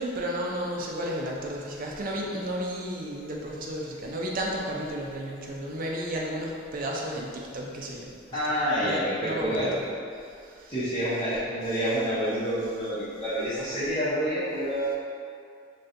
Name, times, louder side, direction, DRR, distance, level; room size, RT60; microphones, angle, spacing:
voice 1, 0.0-8.6 8.8-9.8 10.3-12.1, equal, 45° right, -2 dB, 0.4 m, -33 dB
voice 2, 8.3-9.7 10.7-15.0, equal, 25° left, -14 dB, 0.7 m, -28 dB
4.1 x 2.2 x 2.5 m, 2.3 s
head